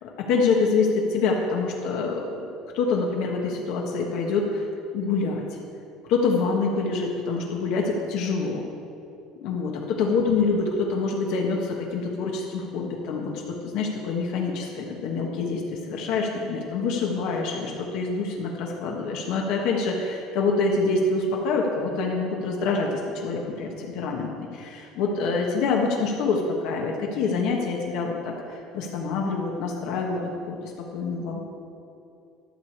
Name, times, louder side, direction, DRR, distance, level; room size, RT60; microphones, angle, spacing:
voice 1, 0.0-2.5 2.7-4.7 4.9-5.4 6.1-8.6 9.4-30.2 30.4-31.4, left 4 dB, 60° left, 0 dB, 1.3 m, -26 dB
12.0 x 4.9 x 8.5 m, 2.7 s
cardioid pair, 170°, 0 cm